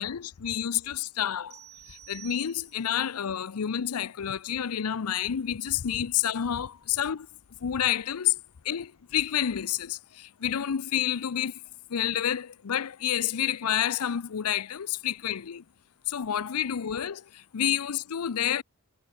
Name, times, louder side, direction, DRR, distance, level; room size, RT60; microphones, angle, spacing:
voice 1, 0.0-1.5 2.1-7.3 7.6-8.4 8.7-11.5 11.9-15.6 16.1-17.2 17.5-18.6, left 10 dB, 85° left, 0.6 m, -29 dB
sound 1, 1.5-3.0, right 13 dB, 75° right, 3.6 m, -50 dB
head